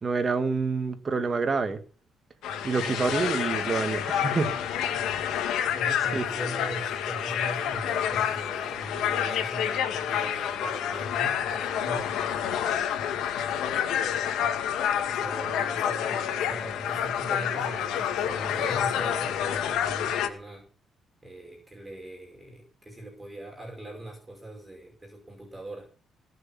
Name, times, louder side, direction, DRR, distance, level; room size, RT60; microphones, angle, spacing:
voice 1, 0.0-1.8 2.6-4.5 6.1-6.3, right 4 dB, 35° right, 2.1 m, -27 dB
sound 1, 2.4-20.3, left 9 dB, 85° left, 2.1 m, -28 dB
voice 2, 5.7-12.9 13.7-20.7 21.2-25.9, right 1 dB, 15° right, 5.3 m, -41 dB
20.0 x 6.7 x 7.3 m
cardioid pair, 90°, 0 cm